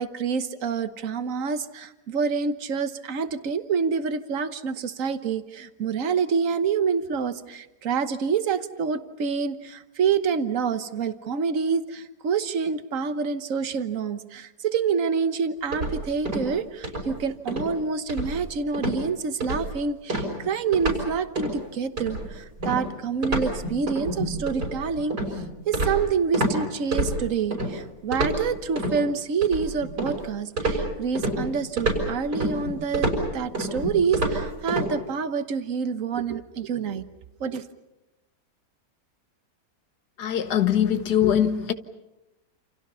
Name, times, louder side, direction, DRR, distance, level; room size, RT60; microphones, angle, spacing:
voice 1, 0.0-37.1 37.4-37.7, right 6 dB, 55° right, 1.5 m, -27 dB
sound 1, 15.7-16.6 16.8-17.1 17.5-17.7 18.1-18.5 18.7-19.0 19.4-19.7 20.1-21.1 21.4-21.6 22.0-26.6 26.9-27.7 28.1-29.0 29.4-30.2 30.6-34.9, right 1 dB, 75° right, 6.6 m, -28 dB
voice 2, 40.2-41.7, left 9 dB, 80° left, 1.7 m, -22 dB
29.0 x 28.0 x 5.6 m
omnidirectional pair, 1.7 m